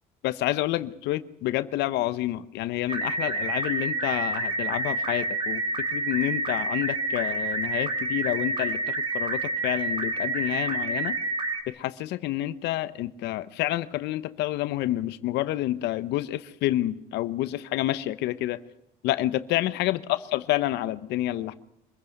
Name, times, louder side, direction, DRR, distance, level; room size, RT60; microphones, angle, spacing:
voice 1, 0.2-5.6 5.9-11.2 11.7-18.6 19.0-21.5, left 15 dB, 85° left, 14 dB, 1.0 m, -28 dB
sound 1, 2.9-11.6, right 2 dB, 30° right, 3.5 m, -28 dB
25.5 x 16.0 x 9.3 m, 0.81 s
cardioid pair, 110°, 17 cm